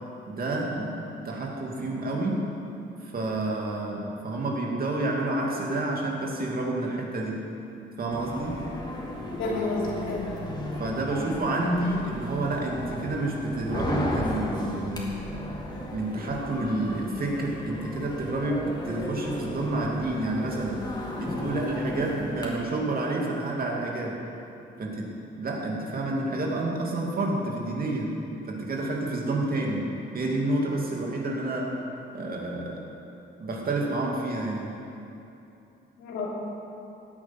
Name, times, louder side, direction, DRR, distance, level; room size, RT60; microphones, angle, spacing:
voice 1, 0.3-2.5 3.0-7.4 8.0-8.6 10.8-15.2 15.9-20.9 21.2-24.2 24.8-31.8 32.1-32.8 33.4-34.7, right 2 dB, 50° right, -1 dB, 2.7 m, -29 dB
sound 1, 8.1-22.5, left 1 dB, 20° left, 2.8 m, -34 dB
voice 2, 9.4-10.4 36.0-36.3, left 2 dB, 90° left, -4 dB, 3.3 m, -30 dB
16.5 x 8.8 x 6.1 m, 2.8 s
cardioid pair, 90°, 20 cm